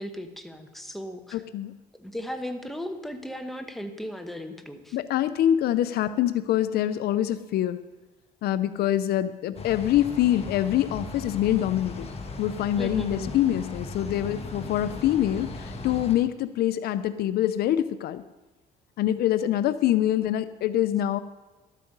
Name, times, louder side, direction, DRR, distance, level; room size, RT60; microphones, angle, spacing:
voice 1, 0.0-1.4 1.9-5.0 12.8-13.3, equal, ahead, 5 dB, 1.0 m, -36 dB
voice 2, 1.3-1.7 4.9-7.8 8.4-12.1 12.4-18.2 19.0-21.2, left 12 dB, 70° left, 13 dB, 0.5 m, -25 dB
sound 1, 9.6-16.2, left 3 dB, 35° left, 1.5 m, -37 dB
12.5 x 8.4 x 5.4 m, 1.2 s
cardioid pair, 110°, 17 cm